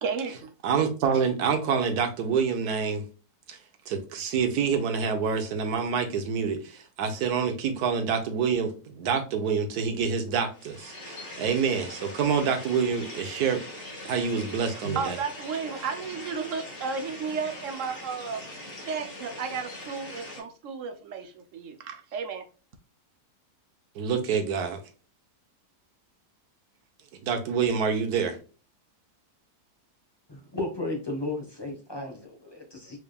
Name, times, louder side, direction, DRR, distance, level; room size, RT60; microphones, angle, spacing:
voice 1, 0.0-0.5 14.8-18.4 18.9-22.4, right 5 dB, 65° right, 0.9 m, -33 dB
voice 2, 0.6-3.0 3.5-3.6 3.9-13.6 14.0-15.2 23.9-24.8 27.2-28.4, right 6 dB, 80° right, 1.3 m, -27 dB
sound 1, 10.5-20.4, left 1 dB, 40° left, 1.6 m, -41 dB
voice 3, 30.3-33.0, left 2 dB, 20° left, 0.8 m, -34 dB
4.5 x 3.4 x 2.3 m
omnidirectional pair, 1.6 m